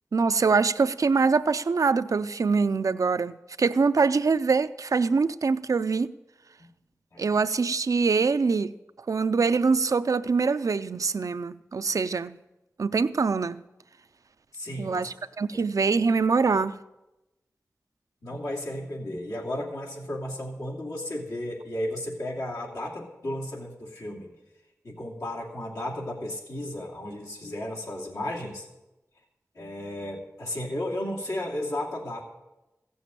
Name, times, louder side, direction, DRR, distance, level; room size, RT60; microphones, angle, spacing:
voice 1, 0.1-6.1 7.2-8.7 9.1-12.4 12.8-13.6 14.8-16.8, right 4 dB, 75° right, 0.5 m, -24 dB
voice 2, 14.5-15.1 15.5-15.6 18.2-24.3 24.8-28.7 29.5-32.2, left 1 dB, 90° left, 2.5 m, -34 dB
16.0 x 7.0 x 7.5 m
wide cardioid pair, 45°, 6 cm